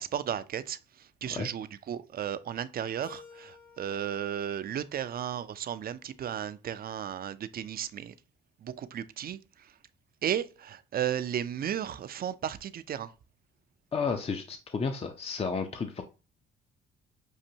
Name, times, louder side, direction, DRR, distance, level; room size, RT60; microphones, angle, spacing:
voice 1, 0.0-8.1 8.6-9.8 10.2-13.1, right 9 dB, 50° right, 0.5 m, -34 dB
Keyboard (musical), 3.0-5.9, left 5 dB, 75° left, 2.4 m, -54 dB
voice 2, 13.9-16.0, left 5 dB, 30° left, 0.5 m, -32 dB
6.4 x 2.6 x 2.8 m
cardioid pair, 90°, 20 cm